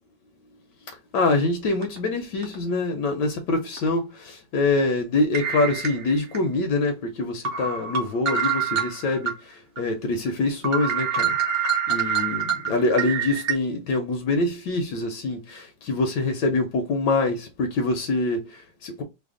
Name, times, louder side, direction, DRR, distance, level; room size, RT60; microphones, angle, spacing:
voice 1, 1.1-11.4 11.9-19.0, left 2 dB, 75° left, 1.2 m, -25 dB
sound 1, 1.8-2.0 2.4-2.6 3.8-3.9 5.3-6.4 6.8-6.9 7.4-9.3 9.8-9.9 10.3-10.4 10.6-13.5, right 7 dB, 60° right, 0.6 m, -26 dB
3.3 x 2.0 x 3.6 m
omnidirectional pair, 2.0 m